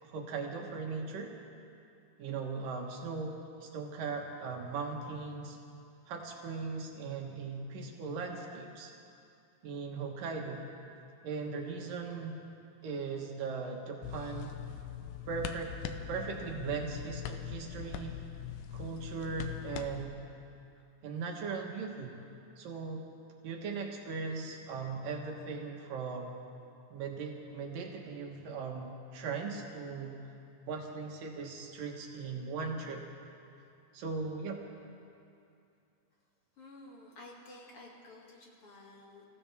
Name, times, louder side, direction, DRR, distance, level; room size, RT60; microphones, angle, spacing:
voice 1, 0.0-1.3 2.2-3.4 3.6-5.6 6.1-8.9 9.6-10.7 11.2-12.3 12.8-14.6 15.3-15.8 16.1-18.2 18.7-20.2 21.0-22.2 22.6-23.0 23.4-26.4 26.9-30.2 30.7-33.0 33.9-34.6, right 4 dB, 70° right, 1 dB, 2.9 m, -38 dB
sound 1, 14.0-20.1, left 9 dB, 80° left, 2.3 m, -42 dB
voice 2, 36.6-39.2, left 2 dB, 45° left, -2 dB, 2.6 m, -52 dB
26.0 x 15.5 x 3.4 m, 2.6 s
omnidirectional pair, 4.1 m